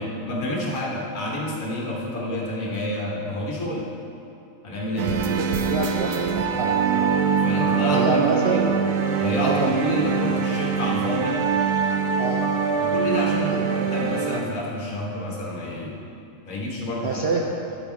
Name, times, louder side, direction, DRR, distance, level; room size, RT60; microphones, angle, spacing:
voice 1, 0.0-3.9 4.6-5.1 7.4-8.7 9.2-11.4 12.8-16.0 16.4-17.2, left 1 dB, 70° left, -3 dB, 1.7 m, -29 dB
sound 1, 5.0-14.4, right 6 dB, 75° right, 1.1 m, -23 dB
voice 2, 5.7-7.1 7.9-8.7 9.4-9.7 12.2-12.4 13.5-13.7 17.0-17.4, right 4 dB, 60° right, -1 dB, 0.7 m, -26 dB
10.0 x 5.5 x 4.5 m, 2.7 s
omnidirectional pair, 1.5 m